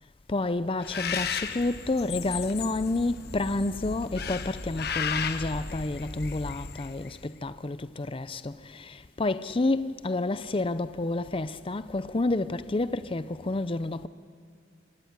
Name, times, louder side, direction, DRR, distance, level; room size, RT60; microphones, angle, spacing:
voice 1, 0.3-14.1, left 2 dB, 30° left, 0.6 m, -29 dB
Bird, 0.8-7.2, left 6 dB, 60° left, 1.1 m, -35 dB
25.5 x 16.5 x 9.5 m
head